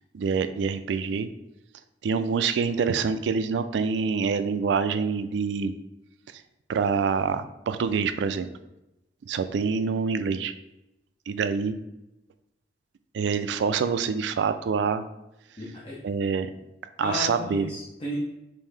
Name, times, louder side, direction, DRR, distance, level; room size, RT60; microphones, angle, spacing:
voice 1, 0.1-1.3 2.0-5.7 6.7-8.5 9.3-10.5 11.3-11.8 13.1-15.0 16.0-16.5 17.0-17.7, right 5 dB, 75° right, 10 dB, 0.3 m, -26 dB
voice 2, 15.6-16.0 17.0-18.2, left 1 dB, 30° left, -5 dB, 0.7 m, -34 dB
5.4 x 2.7 x 3.3 m, 0.91 s
head